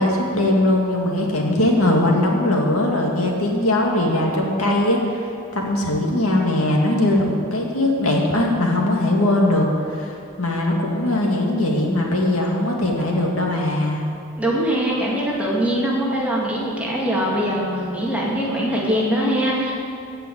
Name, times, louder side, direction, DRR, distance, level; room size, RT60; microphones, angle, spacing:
voice 1, 0.0-10.1 10.4-14.0, left 1 dB, 75° left, 0 dB, 2.2 m, -20 dB
voice 2, 14.4-19.8, equal, 5° right, -5 dB, 2.0 m, -22 dB
16.0 x 5.7 x 8.1 m, 2.5 s
head